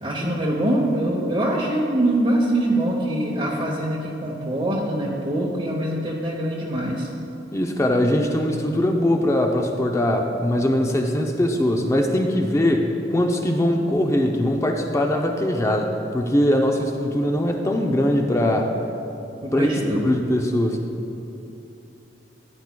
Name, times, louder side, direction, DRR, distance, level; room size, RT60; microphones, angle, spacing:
voice 1, 0.0-7.1 19.4-20.0, right 1 dB, 30° right, -4 dB, 0.8 m, -23 dB
voice 2, 7.5-18.7 19.5-20.9, left 1 dB, 15° left, 2 dB, 0.4 m, -21 dB
13.5 x 9.6 x 2.2 m, 2.8 s
head